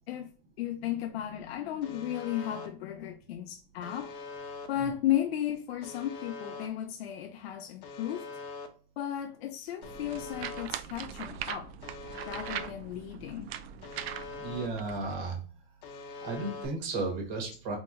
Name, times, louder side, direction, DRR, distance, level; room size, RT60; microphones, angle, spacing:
voice 1, 0.6-4.1 4.7-8.3 9.0-11.7 12.3-13.5, left 11 dB, 90° left, 0.5 m, -34 dB
Alarm, 1.8-2.7 3.8-4.7 5.8-6.7 7.8-8.7 9.8-10.7 11.8-12.7 13.8-14.7 15.8-16.7, left 4 dB, 45° left, 0.7 m, -42 dB
sound 1, 9.8-15.1, right 9 dB, 85° right, 0.5 m, -41 dB
voice 2, 14.4-15.4 16.2-17.8, right 3 dB, 50° right, 1.4 m, -34 dB
3.8 x 2.9 x 2.4 m
supercardioid pair, 160°, 30 cm